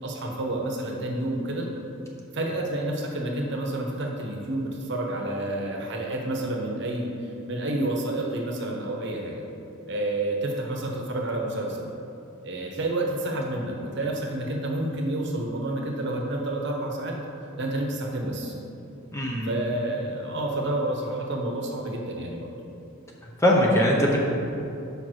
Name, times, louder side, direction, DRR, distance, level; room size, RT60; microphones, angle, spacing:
voice 1, 0.0-1.7 2.3-7.1 7.5-9.4 9.9-11.9 12.4-17.2 17.6-18.5 19.4-22.5, right 1 dB, 55° right, 0 dB, 0.9 m, -29 dB
voice 2, 19.1-19.5 23.2-24.3, equal, 15° left, -3 dB, 0.7 m, -21 dB
5.3 x 4.5 x 6.3 m, 2.8 s
head